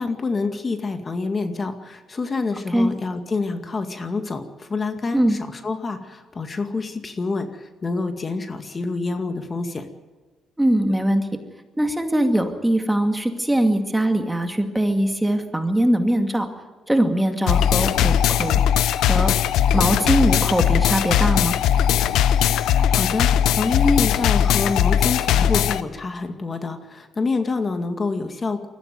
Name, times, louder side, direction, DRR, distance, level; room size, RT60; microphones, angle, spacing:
voice 1, 0.0-9.9 22.6-28.7, left 3 dB, 35° left, 6 dB, 2.1 m, -27 dB
voice 2, 10.6-11.3 11.8-16.5 16.9-18.6 19.0-19.3 19.7-21.6, right 1 dB, 10° right, 5 dB, 2.3 m, -21 dB
sound 1, 17.5-25.8, left 10 dB, 85° left, 0.8 m, -19 dB
21.5 x 15.0 x 9.3 m, 1.3 s
cardioid pair, 90°, 0 cm